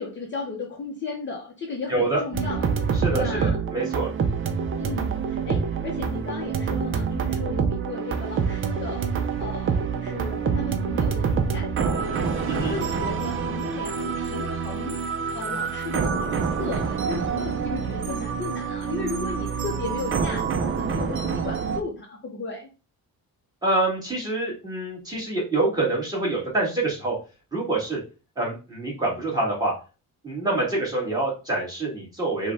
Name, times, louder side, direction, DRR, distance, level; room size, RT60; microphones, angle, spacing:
voice 1, 0.0-2.8 3.1-3.6 4.8-22.7, left 4 dB, 30° left, 0 dB, 0.7 m, -35 dB
voice 2, 1.9-2.2 3.0-4.1 12.4-12.7 23.6-27.1 27.5-28.0 28.4-29.7 30.2-32.5, right 2 dB, 10° right, -5 dB, 1.6 m, -26 dB
sound 1, 2.3-21.8, right 6 dB, 35° right, 0.4 m, -26 dB
5.2 x 2.2 x 3.4 m, 0.32 s
wide cardioid pair, 175°, 37 cm